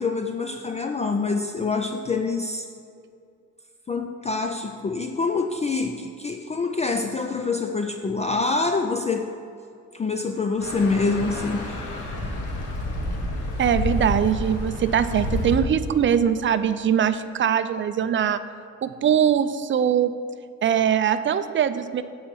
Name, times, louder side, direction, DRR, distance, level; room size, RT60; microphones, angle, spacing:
voice 1, 0.0-2.7 3.9-9.3 9.9-12.1, left 4 dB, 20° left, 5 dB, 0.4 m, -26 dB
sound 1, 10.6-15.6, left 1 dB, 80° left, 1.5 m, -29 dB
voice 2, 13.6-18.4 18.8-20.1 20.6-22.0, right 8 dB, 40° right, 12 dB, 0.5 m, -22 dB
8.6 x 4.2 x 7.0 m, 2.4 s
cardioid pair, 90°, 30 cm